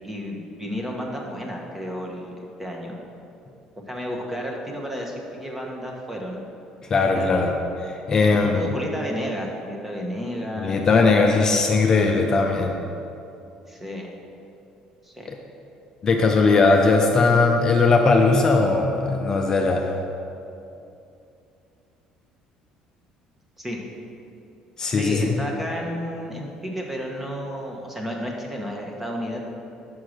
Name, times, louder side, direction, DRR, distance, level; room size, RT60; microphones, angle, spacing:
voice 1, 0.0-2.3 2.6-3.0 3.9-6.4 7.1-7.5 8.5-10.8 13.7-14.1 15.0-15.3 23.6-23.8 25.0-29.4, equal, 10° right, -1 dB, 1.0 m, -32 dB
voice 2, 6.9-7.5 7.8-8.7 10.6-12.8 15.3-15.4 16.0-19.9 24.8-25.4, left 3 dB, 30° left, 2 dB, 0.5 m, -19 dB
6.2 x 4.5 x 6.4 m, 2.7 s
cardioid pair, 125°, 2 cm